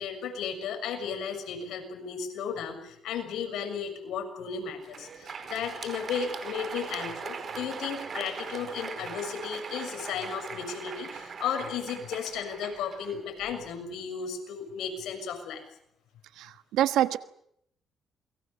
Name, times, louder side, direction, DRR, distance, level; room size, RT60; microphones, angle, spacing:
voice 1, 0.0-15.6, left 7 dB, 80° left, 6 dB, 6.7 m, -34 dB
Crowd, 4.7-13.7, right 5 dB, 50° right, 4.7 m, -40 dB
voice 2, 16.4-17.2, right 12 dB, 90° right, 12 dB, 1.3 m, -26 dB
28.5 x 23.0 x 7.1 m, 0.73 s
cardioid pair, 90°, 0 cm